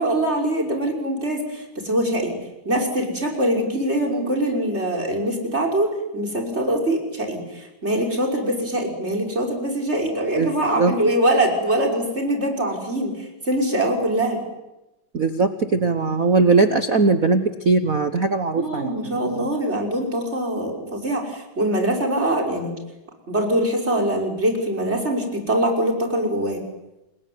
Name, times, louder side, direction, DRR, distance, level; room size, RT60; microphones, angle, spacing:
voice 1, 0.0-2.3 2.6-14.4 18.6-22.7 23.3-26.6, right 1 dB, 20° right, 1 dB, 5.9 m, -23 dB
voice 2, 15.1-19.4, right 3 dB, 65° right, 9 dB, 0.8 m, -20 dB
29.0 x 21.0 x 9.6 m, 0.98 s
omnidirectional pair, 3.3 m